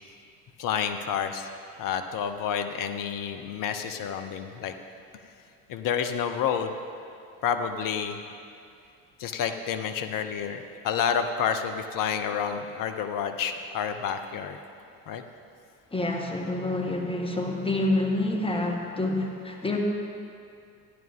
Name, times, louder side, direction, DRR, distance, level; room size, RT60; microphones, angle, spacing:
voice 1, 0.6-1.5 1.8-4.7 5.7-6.7 7.4-8.2 9.2-14.6 15.1-15.2, left 7 dB, 45° left, 7 dB, 0.8 m, -29 dB
voice 2, 15.9-19.8, left 2 dB, 10° left, 0 dB, 1.6 m, -27 dB
13.5 x 10.5 x 3.6 m, 2.4 s
figure-of-eight pair, 65°, 48 cm